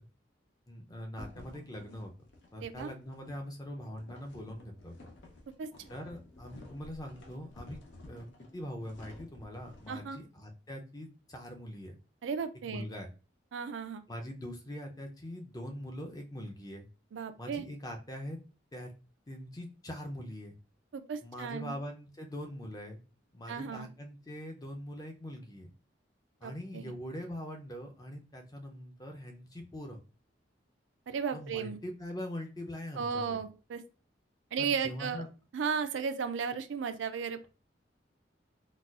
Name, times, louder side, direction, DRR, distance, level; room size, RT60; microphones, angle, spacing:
voice 1, 0.7-2.1 2.5-4.9 5.9-7.8 8.1-8.3 8.5-11.9 12.7-13.1 14.1-16.9 17.4-18.4 18.7-18.9 19.3-20.6 21.2-23.0 23.3-25.7 26.4-30.0 31.3-33.4 34.6-35.3, equal, 20° left, 3 dB, 0.5 m, -42 dB
sound 1, 1.2-10.1, left 2 dB, 85° left, 0.7 m, -53 dB
voice 2, 2.6-2.9 5.6-5.7 9.9-10.2 12.2-12.9 13.5-14.0 17.1-17.7 20.9-21.8 23.5-23.9 26.4-26.9 31.1-31.8 33.0-33.8 34.5-35.2 35.5-37.5, right 6 dB, 85° right, 9 dB, 0.4 m, -35 dB
4.0 x 2.3 x 2.4 m, 0.33 s
head